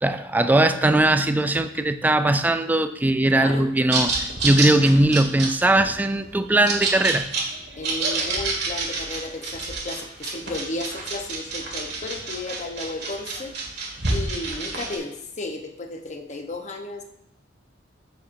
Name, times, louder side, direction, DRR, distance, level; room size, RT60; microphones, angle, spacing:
voice 1, 0.0-7.3, right 1 dB, 10° right, 9 dB, 0.3 m, -20 dB
voice 2, 3.3-3.7 7.8-13.6 14.1-17.0, left 2 dB, 40° left, 4 dB, 0.8 m, -33 dB
sound 1, 3.9-15.0, right 3 dB, 65° right, 1.8 m, -28 dB
12.0 x 5.8 x 2.6 m, 0.84 s
head